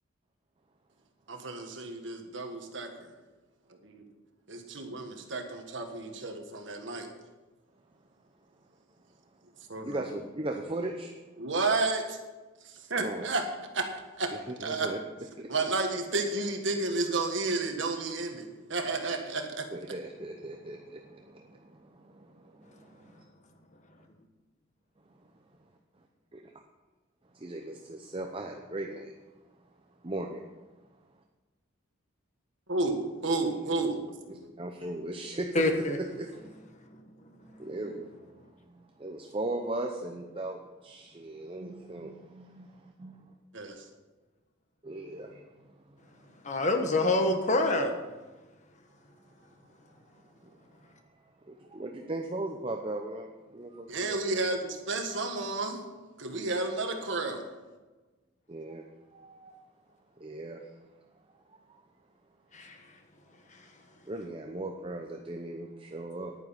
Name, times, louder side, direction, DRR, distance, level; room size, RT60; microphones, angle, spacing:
voice 1, 1.3-3.1 4.5-7.1 9.7-10.0 11.4-12.2 12.9-13.4 13.7-13.9 14.2-14.9 15.5-19.7 32.7-33.0 33.2-33.9 34.3-34.5 43.5-43.8 53.9-55.8 56.2-57.4, right 3 dB, 60° right, 4 dB, 1.6 m, -31 dB
voice 2, 9.8-11.1 13.0-13.3 14.3-15.0 15.4-15.5 19.7-23.1 27.3-29.1 30.0-30.4 34.3-36.4 37.6-38.2 38.7-43.3 44.8-46.2 51.4-54.2 58.5-58.9 59.1-59.6 60.2-60.7 61.5-61.8 64.1-66.3, right 2 dB, 25° right, 3 dB, 0.7 m, -38 dB
voice 3, 35.5-36.0 46.4-47.9 62.5-62.7, left 2 dB, 35° left, 5 dB, 1.3 m, -26 dB
10.5 x 9.5 x 5.8 m, 1.2 s
head